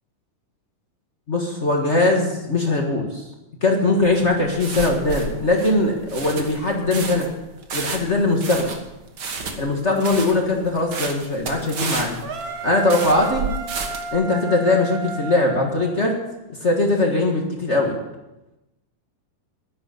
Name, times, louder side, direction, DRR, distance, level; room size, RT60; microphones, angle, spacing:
voice 1, 1.3-3.2 3.6-7.3 7.7-8.7 9.6-12.1 12.6-13.5 14.1-16.2 16.6-18.0, left 2 dB, 35° left, 1 dB, 1.2 m, -20 dB
sound 1, 4.0-14.1, right 4 dB, 45° right, 1.4 m, -31 dB
sound 2, 12.2-16.3, right 2 dB, 75° right, 0.8 m, -33 dB
12.0 x 10.5 x 6.8 m, 0.96 s
omnidirectional pair, 3.7 m